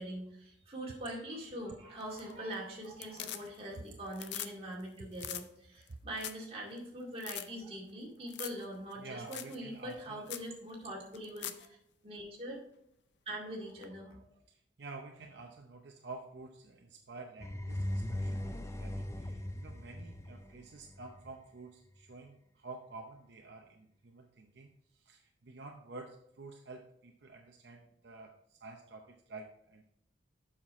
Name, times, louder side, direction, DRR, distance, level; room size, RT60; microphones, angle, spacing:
voice 1, 0.0-11.8 12.0-12.6 13.3-14.2, right 1 dB, 30° right, -3 dB, 2.2 m, -43 dB
sound 1, 2.0-2.5 2.8-3.8 4.1-4.5 4.8-4.9 5.2-5.4 5.9-6.0 6.2-6.5 6.8-6.9 7.2-7.5 8.3-8.6 8.9-9.0 9.3-9.6 9.9-10.0 10.3-10.5 11.1-11.7 13.8-13.9, left 11 dB, 70° left, 0.5 m, -42 dB
voice 2, 9.0-10.3 14.5-29.8, right 3 dB, 65° right, 2 dB, 0.7 m, -50 dB
sound 2, 17.4-21.3, left 1 dB, 15° left, 0.4 m, -39 dB
7.2 x 5.9 x 4.2 m, 0.74 s
head